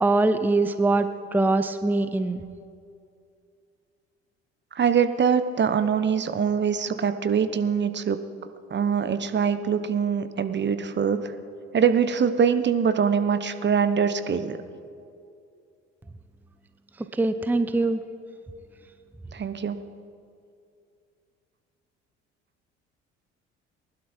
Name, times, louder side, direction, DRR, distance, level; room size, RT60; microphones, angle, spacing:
voice 1, 0.0-2.4 17.1-18.0, right 2 dB, 5° right, 10 dB, 0.7 m, -23 dB
voice 2, 4.7-8.2 8.7-11.3 11.7-14.6 19.3-19.8, right 7 dB, 30° right, 10 dB, 1.1 m, -23 dB
20.0 x 11.5 x 4.5 m, 2.4 s
hypercardioid pair, 55°, 34 cm